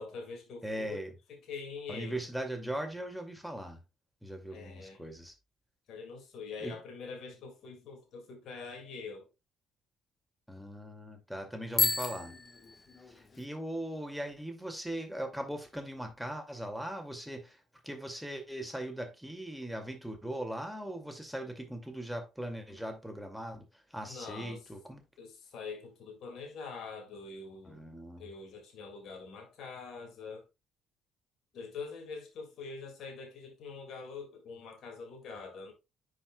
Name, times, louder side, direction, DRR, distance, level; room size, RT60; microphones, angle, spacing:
voice 1, 0.0-1.0 1.3-2.2 4.5-5.0 5.9-9.3 24.0-24.6 25.2-27.8 28.2-30.5 31.5-35.7, left 4 dB, 60° left, 2.1 m, -44 dB
voice 2, 0.6-1.1 1.9-3.8 4.2-5.3 6.6-6.8 10.5-12.4 13.1-25.0 27.6-28.3, right 1 dB, ahead, 2.2 m, -39 dB
Bicycle bell, 11.7-13.4, left 4 dB, 35° left, 1.4 m, -32 dB
10.0 x 4.9 x 2.3 m
hypercardioid pair, 50°, 0 cm